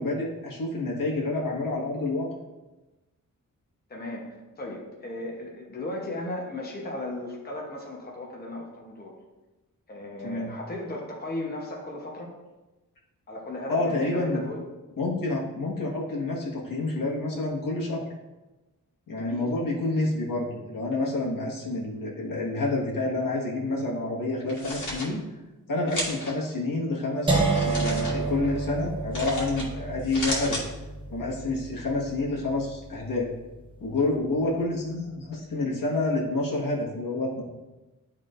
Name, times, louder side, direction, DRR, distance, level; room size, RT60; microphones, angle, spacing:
voice 1, 0.0-2.3 10.2-10.5 13.7-14.4 15.0-18.0 19.1-25.2 25.7-30.6 31.1-33.3 33.8-37.4, left 2 dB, 85° left, -4 dB, 1.6 m, -28 dB
voice 2, 3.9-9.2 9.9-12.3 13.3-14.6 19.1-19.5, left 1 dB, 30° left, -2 dB, 1.0 m, -36 dB
sound 1, 24.4-25.1 25.9-26.3 27.5-28.1 29.1-29.7 30.0-30.6, left 1 dB, 65° left, 1.8 m, -33 dB
sound 2, 27.3-33.2, right 3 dB, 15° right, 0.9 m, -30 dB
11.0 x 3.7 x 2.5 m, 1.1 s
wide cardioid pair, 170°, 32 cm